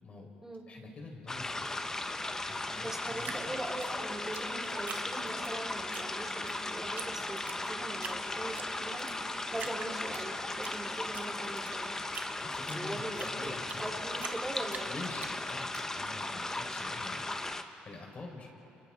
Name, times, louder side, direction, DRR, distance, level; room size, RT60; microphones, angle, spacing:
voice 1, 0.7-1.7 2.5-3.4 12.4-13.8 14.8-17.2 17.8-18.5, left 3 dB, 45° left, 1 dB, 4.7 m, -46 dB
sound 1, 1.3-17.6, left 2 dB, 15° left, 1.1 m, -37 dB
voice 2, 2.8-11.9 12.7-15.0, right 1 dB, 15° right, -4 dB, 4.8 m, -41 dB
Drip, 3.2-5.5 5.9-6.6 7.0-7.1 7.4-8.2 8.6-9.2 9.6-10.8 11.1-13.9 14.2-15.8, right 7 dB, 55° right, 1.3 m, -44 dB
29.5 x 29.0 x 3.8 m, 2.9 s
cardioid pair, 90°, 3 cm